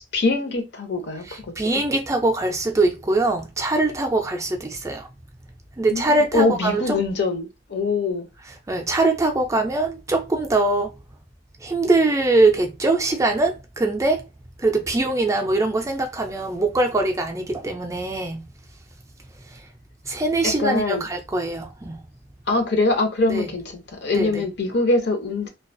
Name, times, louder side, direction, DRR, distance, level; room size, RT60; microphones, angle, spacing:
voice 1, 0.0-1.2 1.7-1.8 5.9-8.3 20.4-21.1 22.5-25.5, left 3 dB, 65° left, 0.6 m, -23 dB
voice 2, 1.3-5.1 5.8-7.0 8.7-10.9 11.6-14.2 14.6-18.4 19.5-19.6 20.1-22.0 23.3-23.5 24.1-24.4, right 2 dB, 15° right, 0.3 m, -22 dB
2.4 x 2.3 x 2.5 m
head